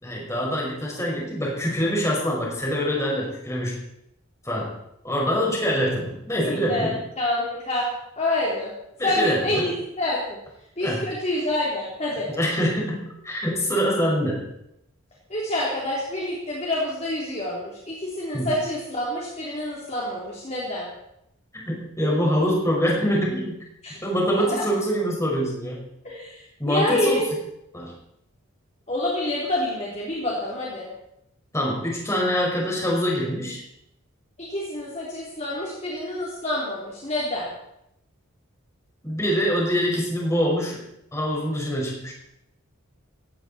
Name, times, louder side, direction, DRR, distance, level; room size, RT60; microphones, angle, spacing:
voice 1, 0.0-3.8 4.5-4.7 5.0-6.9 9.0-9.7 10.8-11.0 12.3-14.4 18.3-18.5 21.6-23.6 24.0-25.9 26.6-27.2 27.7-27.9 31.5-33.6 39.0-40.8 41.1-42.1, equal, 15° left, -2 dB, 5.5 m, -24 dB
voice 2, 6.4-7.9 8.2-8.7 9.0-10.4 10.8-12.3 15.3-20.9 23.8-24.0 24.3-24.6 26.0-27.3 28.9-30.9 34.4-37.5, left 1 dB, 30° left, -5 dB, 3.4 m, -27 dB
18.0 x 16.0 x 4.3 m, 0.80 s
head